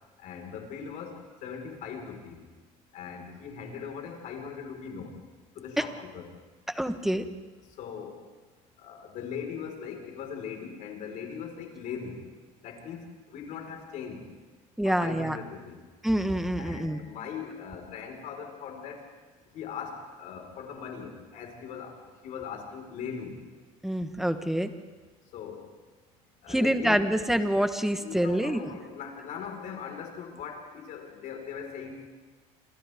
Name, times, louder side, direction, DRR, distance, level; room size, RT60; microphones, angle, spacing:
voice 1, 0.2-2.4 2.9-5.2 5.5-6.3 7.7-8.2 8.8-12.3 12.6-14.2 14.8-15.8 16.6-19.1 19.5-23.4 25.3-25.7 26.4-27.0 27.9-31.9, left 7 dB, 60° left, 2 dB, 4.7 m, -40 dB
voice 2, 6.7-7.3 14.8-15.4 16.0-17.0 23.8-24.7 26.5-28.7, equal, ahead, 8 dB, 1.2 m, -26 dB
27.5 x 27.0 x 3.6 m, 1.3 s
cardioid pair, 130°, 15 cm